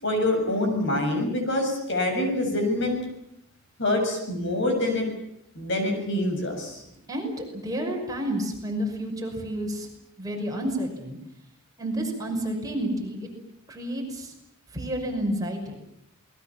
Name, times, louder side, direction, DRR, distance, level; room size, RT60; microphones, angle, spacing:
voice 1, 0.0-3.0 3.8-5.1 5.6-6.8, left 1 dB, 60° left, 4 dB, 7.5 m, -25 dB
voice 2, 7.1-9.9 10.2-11.2 11.8-13.3 13.7-14.3 14.7-15.8, right 1 dB, 20° right, 1 dB, 5.8 m, -30 dB
28.0 x 21.0 x 7.3 m, 0.79 s
head